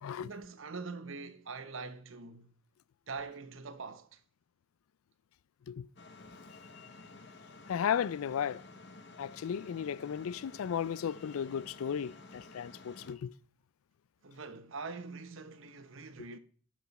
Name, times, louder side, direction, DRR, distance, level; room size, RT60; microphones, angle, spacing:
voice 1, 0.2-2.6 3.1-4.2 14.2-16.4, right 4 dB, 70° right, 0.9 m, -43 dB
sound 1, 6.0-13.1, left 3 dB, 55° left, 1.0 m, -52 dB
voice 2, 7.7-8.6 9.2-13.3, left 8 dB, 85° left, 0.4 m, -35 dB
11.0 x 6.1 x 4.2 m
head